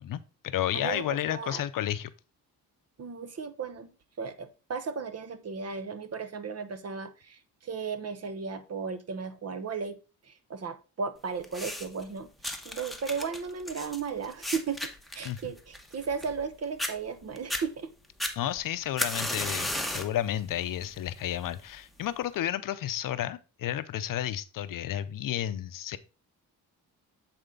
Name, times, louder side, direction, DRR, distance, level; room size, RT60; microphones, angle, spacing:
voice 1, 0.0-2.1 15.2-15.4 18.4-26.0, left 11 dB, 60° left, 0.6 m, -32 dB
voice 2, 0.7-1.6 3.0-3.9 4.2-9.9 10.2-12.3 12.6-14.8 15.1-17.9, right 5 dB, 40° right, 0.9 m, -35 dB
sound 1, 11.4-12.0 12.4-16.5 16.8-16.9 17.4-17.6 18.2-20.2 20.6-21.0 21.8-21.9, left 1 dB, ahead, 1.1 m, -34 dB
8.0 x 4.3 x 3.8 m
cardioid pair, 80°, 37 cm